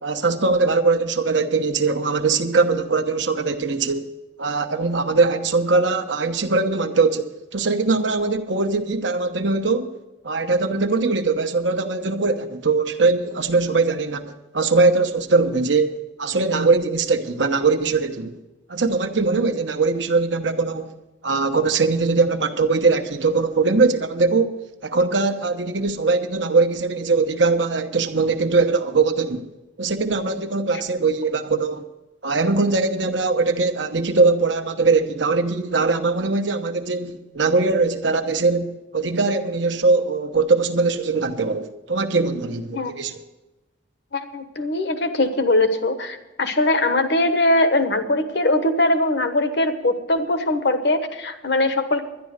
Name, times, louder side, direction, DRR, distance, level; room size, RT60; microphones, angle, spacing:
voice 1, 0.0-4.1 4.4-9.9 10.2-18.4 18.7-20.9 21.2-24.6 24.8-29.5 29.8-31.8 32.2-43.2, right 3 dB, 70° right, 1.0 m, -21 dB
voice 2, 44.1-52.0, left 2 dB, 60° left, 1.2 m, -21 dB
11.5 x 10.5 x 6.5 m
head